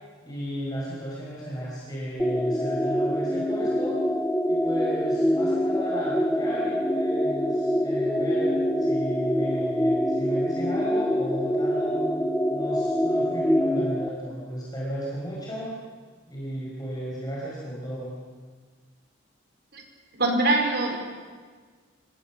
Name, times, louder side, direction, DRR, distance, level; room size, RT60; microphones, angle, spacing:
voice 1, 0.2-4.0 4.5-8.5 8.8-12.0 12.5-15.8 16.3-18.1, equal, 20° left, -5 dB, 4.6 m, -34 dB
sound 1, 2.2-14.1, equal, 5° left, 1.6 m, -25 dB
voice 2, 20.2-21.0, right 2 dB, 60° right, 2 dB, 4.4 m, -23 dB
26.0 x 15.5 x 7.1 m, 1.5 s
head